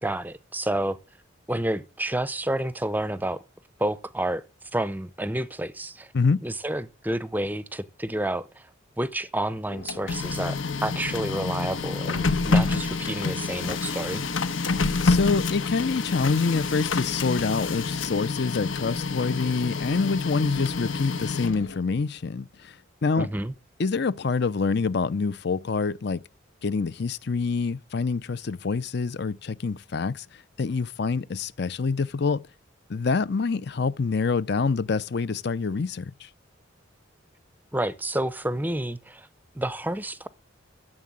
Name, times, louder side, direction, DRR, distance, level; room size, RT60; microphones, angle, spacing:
voice 1, 0.0-1.0 1.5-3.4 3.8-4.4 4.7-6.1 6.4-8.7 9.0-14.2 23.2-23.5 37.7-39.3 39.5-40.3, right 1 dB, 10° right, 0.5 m, -29 dB
Printer, 9.7-21.8, left 4 dB, 85° left, 1.2 m, -28 dB
voice 2, 15.0-23.3 23.8-26.2 26.6-32.4 32.9-36.3, left 4 dB, 55° left, 0.5 m, -26 dB
13.0 x 7.6 x 7.3 m
head